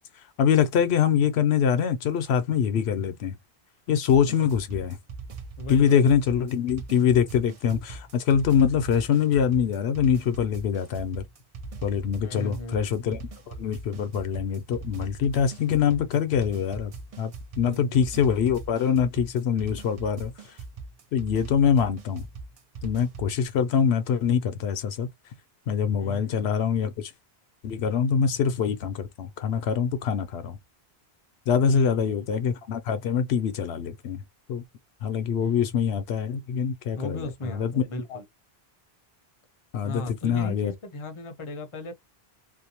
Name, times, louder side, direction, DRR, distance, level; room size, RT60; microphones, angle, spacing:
voice 1, 0.4-3.4 3.9-5.0 5.7-11.2 11.8-20.3 21.1-22.3 22.8-25.1 25.7-27.1 27.6-30.6 31.5-34.2 34.5-34.6 35.0-37.8 38.1-38.2 39.7-40.7, left 7 dB, 80° left, 0.8 m, -24 dB
voice 2, 4.1-4.6 5.6-6.0 12.2-13.0 17.6-18.0 26.0-26.5 31.6-32.3 35.4-35.7 37.0-38.2 39.8-41.9, left 1 dB, 35° left, 0.6 m, -37 dB
sound 1, 4.1-23.3, right 4 dB, 45° right, 0.5 m, -40 dB
2.6 x 2.0 x 2.7 m
omnidirectional pair, 1.1 m